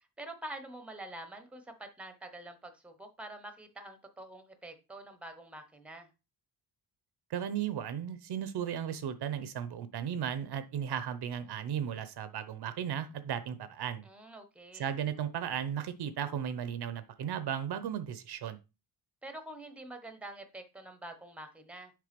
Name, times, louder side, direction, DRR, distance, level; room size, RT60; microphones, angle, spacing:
voice 1, 0.0-6.1 14.0-14.8 19.2-21.9, right 1 dB, 5° right, 0.9 m, -46 dB
voice 2, 7.3-14.0 14.7-18.6, right 9 dB, 60° right, 0.8 m, -35 dB
6.7 x 3.4 x 5.2 m
cardioid pair, 145°, 44 cm